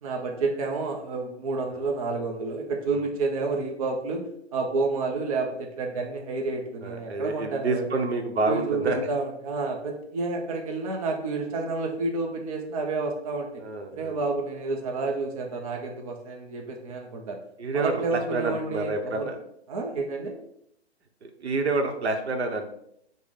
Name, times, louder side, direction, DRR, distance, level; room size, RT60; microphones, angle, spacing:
voice 1, 0.0-7.9 8.4-13.6 13.9-17.4 17.7-19.3 19.7-20.4, right 3 dB, 35° right, 0 dB, 0.5 m, -30 dB
voice 2, 6.8-9.1 13.6-14.2 17.6-19.4 21.2-22.7, right 3 dB, 75° right, 5 dB, 0.8 m, -28 dB
4.6 x 2.1 x 3.5 m, 0.74 s
hypercardioid pair, 140°, 33 cm